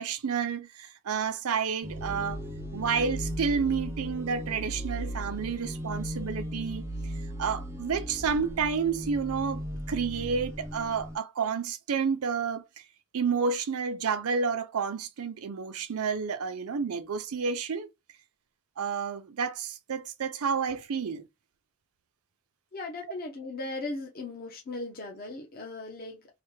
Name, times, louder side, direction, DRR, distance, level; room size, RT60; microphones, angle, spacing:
voice 1, 0.0-2.4 2.7-6.8 7.4-9.6 9.9-12.6 13.1-17.9 18.8-21.3, right 6 dB, 75° right, 0.5 m, -30 dB
sound 1, 1.8-11.2, equal, 10° right, 0.4 m, -37 dB
voice 2, 22.7-26.3, left 2 dB, 40° left, 0.7 m, -38 dB
3.3 x 2.2 x 3.1 m
head